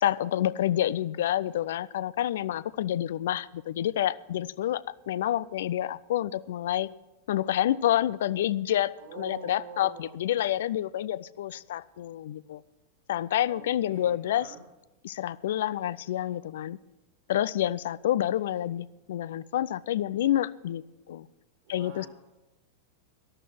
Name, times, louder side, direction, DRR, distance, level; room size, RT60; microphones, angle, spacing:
voice 1, 0.0-6.9 7.3-12.6 13.1-14.5 15.0-16.8 17.3-21.3 21.7-22.1, left 12 dB, 65° left, 19 dB, 0.4 m, -28 dB
voice 2, 9.0-10.2 13.5-14.6 21.6-22.1, right 6 dB, 65° right, 2 dB, 3.7 m, -46 dB
13.0 x 11.5 x 6.0 m, 1.0 s
figure-of-eight pair, 95°, 0 cm